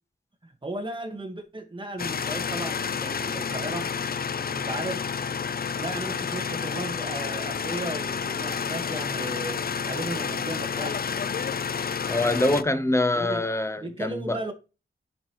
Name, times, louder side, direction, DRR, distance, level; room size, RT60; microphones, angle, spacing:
voice 1, 0.4-3.9 4.5-5.0 5.7-11.0 13.1-13.4 13.8-14.5, right 1 dB, 25° right, 1.6 m, -35 dB
sound 1, 2.0-12.6, left 6 dB, 50° left, 0.4 m, -30 dB
voice 2, 12.1-14.4, left 2 dB, 15° left, 0.8 m, -25 dB
10.0 x 5.2 x 3.1 m
wide cardioid pair, 80°, 20 cm